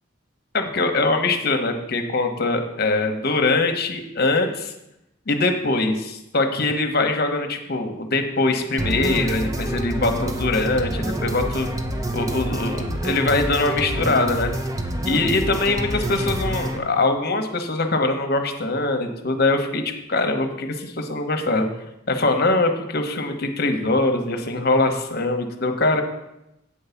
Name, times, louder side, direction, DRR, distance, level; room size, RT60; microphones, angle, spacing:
voice 1, 0.5-4.7 5.3-11.7 12.1-14.5 15.0-21.7 22.1-26.0, left 2 dB, 50° left, 6 dB, 1.0 m, -22 dB
sound 1, 8.8-16.8, right 1 dB, 15° right, 0.6 m, -27 dB
8.7 x 4.7 x 6.9 m, 0.88 s
head